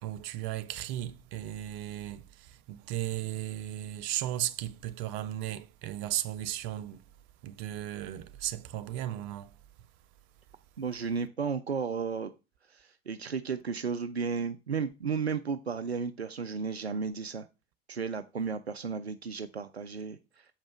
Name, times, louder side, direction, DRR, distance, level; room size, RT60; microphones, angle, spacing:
voice 1, 0.0-7.0 7.4-9.6, right 13 dB, 55° right, 0.8 m, -36 dB
voice 2, 10.8-12.3 12.7-17.5 17.9-20.5, right 5 dB, 90° right, 0.5 m, -34 dB
7.2 x 5.3 x 5.5 m
figure-of-eight pair, 65°, 31 cm